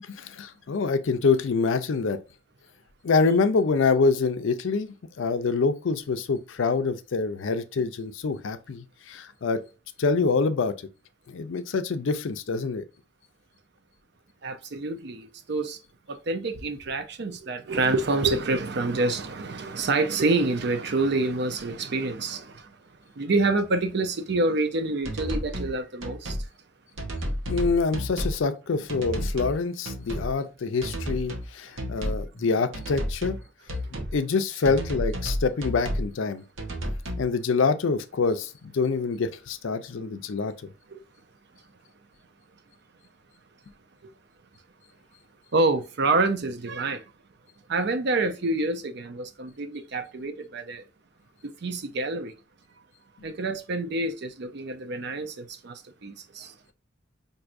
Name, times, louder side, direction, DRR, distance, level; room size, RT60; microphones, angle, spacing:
voice 1, 0.0-2.2 3.0-9.6 10.0-10.7 11.3-12.8 27.5-33.4 34.1-36.4 37.2-40.5, left 4 dB, 75° left, 0.5 m, -26 dB
voice 2, 14.4-15.8 16.1-22.7 23.2-26.4 32.4-32.5 33.8-33.9 40.9-41.0 44.0-44.1 45.5-47.0 47.7-50.8 51.4-52.3 53.2-56.5, right 3 dB, 55° right, 0.5 m, -27 dB
sound 1, 25.0-25.7 26.0-26.5 27.0-28.4 28.9-29.6 29.9-30.3 30.8-31.5 31.8-32.3 32.7-33.4 33.7-34.2 34.7-36.1 36.6-37.3, equal, 75° right, 0.9 m, -31 dB
4.6 x 2.7 x 2.5 m
head